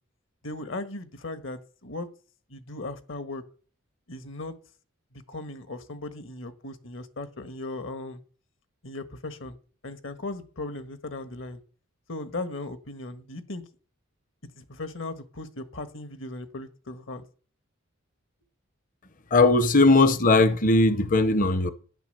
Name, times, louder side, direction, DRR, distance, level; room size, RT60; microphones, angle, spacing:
voice 1, 0.4-2.1 2.5-3.4 4.1-4.5 5.1-8.2 8.8-9.6 9.8-11.6 12.1-13.6 14.5-17.2, left 2 dB, 65° left, 1.4 m, -37 dB
voice 2, 19.3-21.7, left 2 dB, 40° left, 0.7 m, -19 dB
12.5 x 9.9 x 6.7 m
head